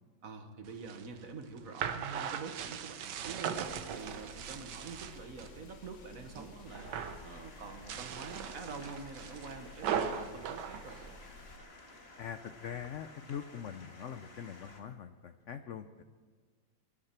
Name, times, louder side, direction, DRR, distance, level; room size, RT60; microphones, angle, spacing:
voice 1, 0.2-3.6 3.9-6.9 7.2-11.0, right 4 dB, 50° right, 7 dB, 1.4 m, -46 dB
sound 1, 0.7-5.6 5.9-6.5 6.8-7.3 7.8-11.6, right 8 dB, 70° right, 1.4 m, -39 dB
sound 2, 3.5-11.6, left 5 dB, 60° left, 1.7 m, -54 dB
sound 3, 6.7-14.8, left 2 dB, 35° left, 1.7 m, -55 dB
voice 2, 12.2-16.0, left 8 dB, 80° left, 9 dB, 0.6 m, -43 dB
22.0 x 11.5 x 4.4 m, 1.5 s
omnidirectional pair, 2.0 m